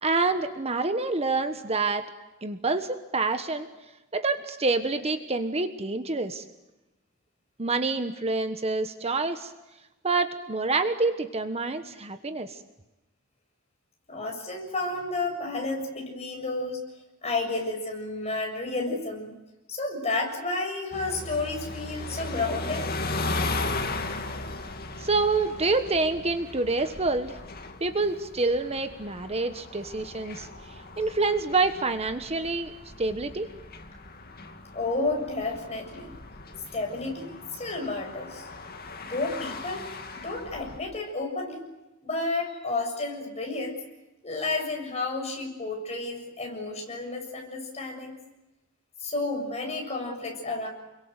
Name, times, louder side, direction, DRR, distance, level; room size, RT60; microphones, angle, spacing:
voice 1, 0.0-2.1 2.4-3.7 4.1-6.4 7.6-9.5 10.0-12.6 25.0-27.3 27.8-30.5 31.0-32.7 33.0-33.5, right 3 dB, 30° right, 8 dB, 1.3 m, -27 dB
voice 2, 14.1-16.9 17.2-19.3 19.7-22.9 34.7-36.1 36.7-38.5 39.0-39.8 40.1-41.6 42.0-43.8 44.2-48.2 49.0-50.7, left 2 dB, 30° left, 1 dB, 7.4 m, -31 dB
sound 1, 20.9-40.8, left 2 dB, 50° left, 2.4 m, -37 dB
30.0 x 23.0 x 8.1 m, 1.0 s
head